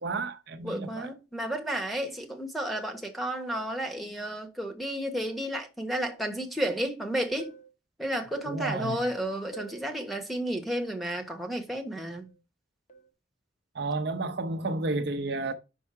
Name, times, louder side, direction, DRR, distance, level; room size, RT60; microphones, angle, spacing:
voice 1, 0.0-1.1 8.4-9.0 13.7-15.5, right 3 dB, 60° right, 0.7 m, -31 dB
voice 2, 0.6-7.5 8.0-12.3, right 1 dB, ahead, 1.2 m, -32 dB
sound 1, 2.7-3.0 3.5-3.8 5.2-5.5 5.9-6.2 7.4-7.7 8.3-8.6 9.5-9.9 12.1-12.4 12.9-13.1, right 5 dB, 40° left, 1.2 m, -46 dB
5.6 x 4.6 x 5.6 m
head